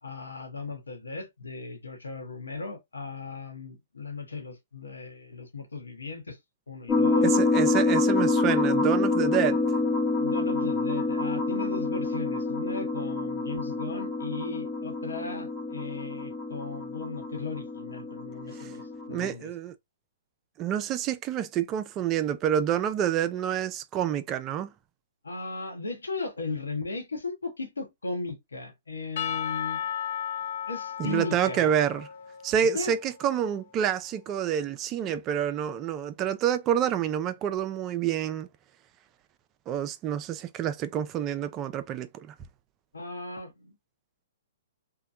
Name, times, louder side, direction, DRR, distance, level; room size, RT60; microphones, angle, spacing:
voice 1, 0.0-6.4 6.7-7.3 10.2-19.5 25.2-29.8 30.7-31.7 32.7-33.0 42.9-43.7, left 3 dB, 85° left, 0.9 m, -37 dB
sound 1, 6.9-19.3, left 3 dB, 20° left, 1.0 m, -27 dB
voice 2, 7.2-9.6 18.5-18.7 19.1-19.7 20.6-24.7 31.0-32.1 32.4-38.5 39.7-42.4, right 9 dB, 30° right, 0.3 m, -28 dB
Percussion / Church bell, 29.2-33.5, left 9 dB, 55° left, 0.5 m, -35 dB
2.7 x 2.1 x 2.3 m
hypercardioid pair, 125°, 0 cm